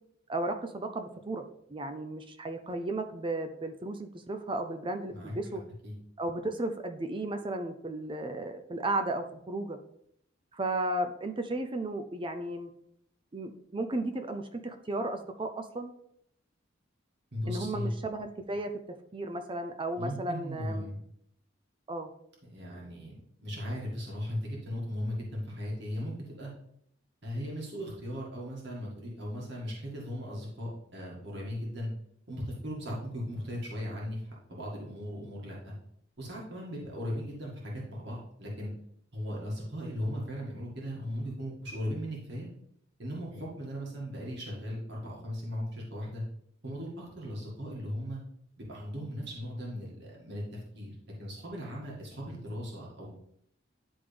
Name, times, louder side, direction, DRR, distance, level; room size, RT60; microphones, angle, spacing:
voice 1, 0.3-1.4 1.7-5.6 6.2-9.8 10.5-12.7 13.3-15.9 17.5-18.7 19.1-20.9 21.9-22.1, right 2 dB, 25° right, 7 dB, 0.5 m, -34 dB
voice 2, 17.3-17.9 20.0-21.0 22.4-26.5 27.2-31.9 32.3-35.7 36.2-38.7 39.1-42.5 43.0-46.2 46.6-48.2 48.6-50.4 50.7-53.1, equal, 65° right, -4 dB, 1.9 m, -37 dB
10.5 x 3.5 x 3.4 m, 0.71 s
head